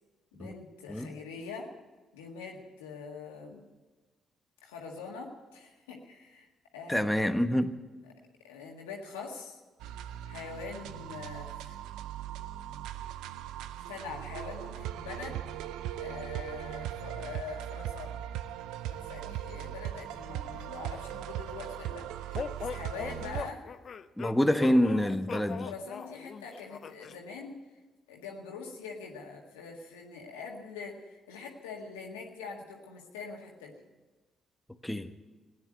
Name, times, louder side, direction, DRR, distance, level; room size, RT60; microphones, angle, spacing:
voice 1, 0.3-1.7 2.1-3.6 4.6-6.5 6.7-7.3 8.1-8.2 8.4-9.6 10.3-11.7 13.9-15.4 16.0-18.2 18.9-23.6 25.5-27.6 28.1-33.7, left 5 dB, 90° left, 1.8 m, -44 dB
voice 2, 6.9-7.8 24.2-25.7 34.8-35.1, equal, 5° left, 1.1 m, -26 dB
sound 1, 9.8-23.5, right 11 dB, 80° right, 0.5 m, -39 dB
sound 2, 22.3-27.2, left 6 dB, 55° left, 0.6 m, -40 dB
16.5 x 9.5 x 9.0 m
hypercardioid pair, 45°, 0 cm